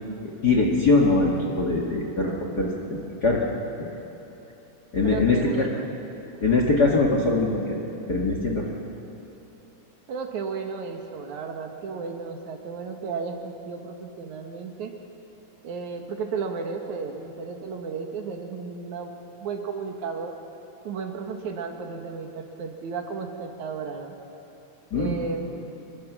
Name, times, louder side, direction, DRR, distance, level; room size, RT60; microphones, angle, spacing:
voice 1, 0.4-3.4 4.9-5.7 6.4-7.8 8.1-8.7 24.9-25.1, left 3 dB, 35° left, 0 dB, 1.8 m, -22 dB
voice 2, 5.0-5.9 10.1-14.9 15.6-19.1 19.4-20.3 20.8-24.2 24.9-25.7, right 5 dB, 65° right, 4 dB, 2.7 m, -34 dB
25.5 x 22.0 x 6.1 m, 2.9 s
omnidirectional pair, 3.8 m